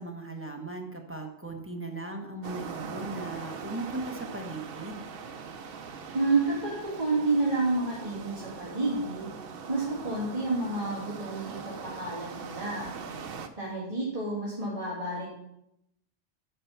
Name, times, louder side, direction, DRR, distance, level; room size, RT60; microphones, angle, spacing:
voice 1, 0.0-5.0, right 2 dB, 10° right, 2 dB, 1.1 m, -38 dB
sound 1, 2.4-13.5, right 5 dB, 55° right, 0.9 m, -41 dB
voice 2, 6.1-9.3 9.7-12.9 13.6-15.3, right 3 dB, 30° right, -8 dB, 2.3 m, -29 dB
8.9 x 5.8 x 5.7 m, 0.81 s
omnidirectional pair, 1.2 m